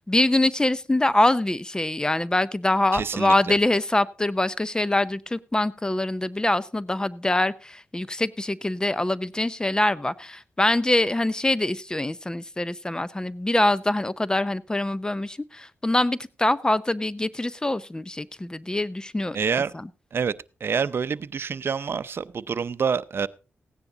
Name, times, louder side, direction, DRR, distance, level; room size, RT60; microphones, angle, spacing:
voice 1, 0.1-19.4 19.7-19.9, left 1 dB, 15° left, 0.6 m, -24 dB
voice 2, 2.9-3.5 19.3-19.7 20.1-20.3 20.6-23.3, right 6 dB, 60° right, 0.6 m, -27 dB
16.0 x 9.8 x 3.8 m
cardioid pair, 65°, 4 cm